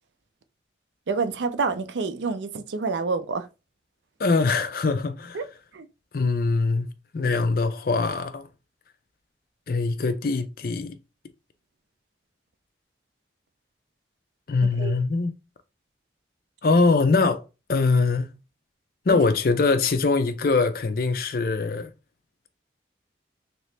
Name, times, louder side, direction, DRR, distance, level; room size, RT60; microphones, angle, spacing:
voice 1, 1.1-3.5 5.3-5.4 5.7-5.9 14.6-15.0 19.1-19.2, right 4 dB, 80° right, 0.5 m, -28 dB
voice 2, 4.2-5.4 6.1-6.9 7.1-8.5 9.7-11.0 14.5-15.3 16.6-17.4 17.7-18.3 19.1-21.9, left 3 dB, 50° left, 0.4 m, -22 dB
3.0 x 2.8 x 3.2 m
head